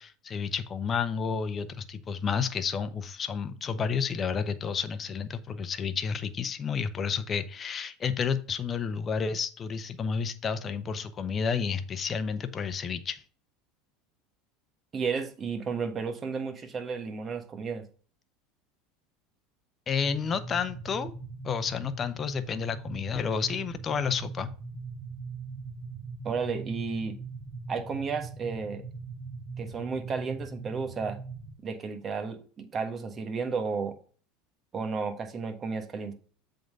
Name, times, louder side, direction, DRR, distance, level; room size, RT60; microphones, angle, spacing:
voice 1, 0.0-13.2 19.9-21.1 21.4-24.5, left 6 dB, 35° left, 11 dB, 0.8 m, -31 dB
voice 2, 14.9-17.9 26.2-27.2 27.7-28.8 29.6-31.2 31.6-34.0 34.7-36.1, right 5 dB, 35° right, 8 dB, 1.4 m, -33 dB
sound 1, 20.0-31.5, right 4 dB, 60° right, 2.2 m, -41 dB
7.6 x 3.9 x 5.3 m, 0.40 s
hypercardioid pair, 95°, 0 cm